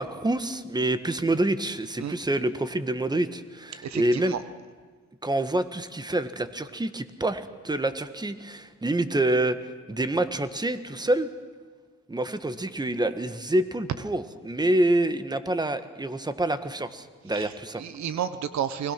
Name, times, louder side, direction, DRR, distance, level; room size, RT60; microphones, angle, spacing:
voice 1, 0.0-4.4 5.2-9.6 9.9-11.3 12.1-17.8, right 1 dB, 15° right, 11 dB, 1.6 m, -27 dB
voice 2, 3.8-4.4 17.3-17.5 17.8-18.9, right 9 dB, 65° right, 12 dB, 1.2 m, -31 dB
29.5 x 21.0 x 6.1 m, 1.6 s
cardioid pair, 90°, 30 cm